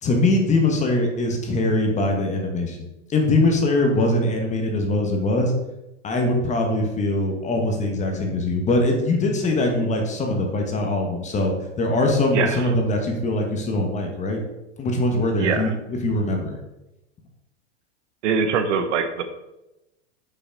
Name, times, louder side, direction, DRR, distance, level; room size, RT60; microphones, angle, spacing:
voice 1, 0.0-5.5 6.0-14.4 14.8-16.6, left 2 dB, 20° left, 2 dB, 1.2 m, -22 dB
voice 2, 12.3-12.7 15.4-15.7 18.2-19.2, right 6 dB, 75° right, 8 dB, 1.0 m, -23 dB
5.7 x 4.2 x 5.1 m, 0.93 s
hypercardioid pair, 130°, 36 cm